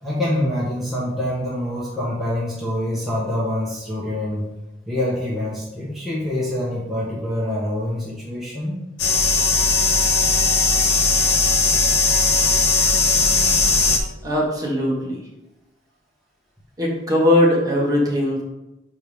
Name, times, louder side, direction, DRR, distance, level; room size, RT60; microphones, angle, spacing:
voice 1, 0.0-4.5 4.9-8.8, left 1 dB, ahead, -7 dB, 1.2 m, -25 dB
sound 1, 9.0-14.0, left 4 dB, 70° left, 0.9 m, -18 dB
voice 2, 14.2-15.2 16.8-18.4, left 1 dB, 20° right, -3 dB, 1.4 m, -19 dB
6.3 x 4.6 x 3.5 m, 0.97 s
head